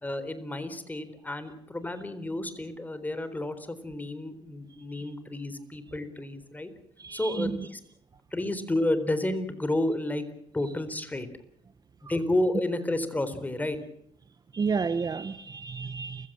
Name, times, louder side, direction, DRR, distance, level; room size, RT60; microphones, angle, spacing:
voice 1, 0.0-6.7 7.1-7.8 8.3-10.3 10.5-11.3 12.0-13.8, left 1 dB, 15° left, 11 dB, 4.0 m, -31 dB
voice 2, 7.0-7.7 14.5-16.3, right 5 dB, 35° right, 13 dB, 1.1 m, -31 dB
29.0 x 16.0 x 7.6 m, 0.74 s
supercardioid pair, 75°, 11 cm